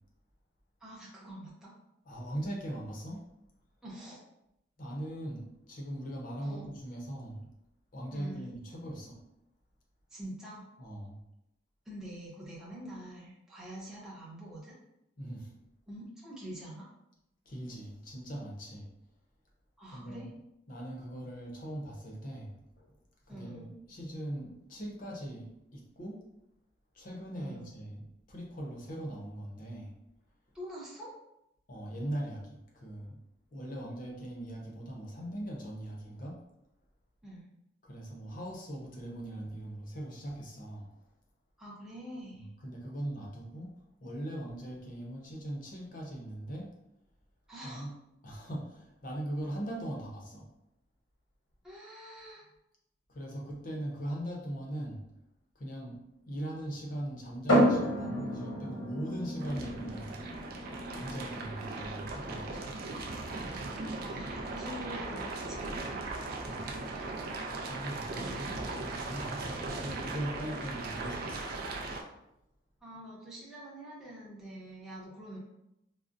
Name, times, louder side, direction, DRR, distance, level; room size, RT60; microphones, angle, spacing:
voice 1, 0.8-1.7 3.8-4.2 6.4-6.7 8.1-8.4 10.1-10.7 11.9-14.8 15.9-16.9 19.8-20.3 23.3-23.7 27.4-27.8 30.5-31.1 37.2-37.5 41.6-42.5 47.5-47.9 51.6-52.4 64.0-66.0 68.1-68.6 72.8-75.4, right 1 dB, 5° right, -7 dB, 0.6 m, -45 dB
voice 2, 2.0-3.2 4.8-7.5 7.9-9.2 10.8-11.2 15.2-15.5 17.5-18.9 19.9-20.3 20.7-22.9 23.3-26.2 26.9-29.9 31.7-33.2 33.5-36.4 37.8-40.9 42.3-43.7 44.0-46.7 47.6-47.9 48.2-50.5 53.1-55.0 55.6-60.2 60.9-62.7 66.4-66.7 67.5-71.5, right 1 dB, 45° left, -1 dB, 0.6 m, -40 dB
sound 1, 57.5-71.0, equal, 85° left, 1.1 m, -35 dB
sound 2, 59.4-72.0, right 3 dB, 50° right, 0.4 m, -38 dB
3.7 x 2.0 x 2.5 m, 0.83 s
head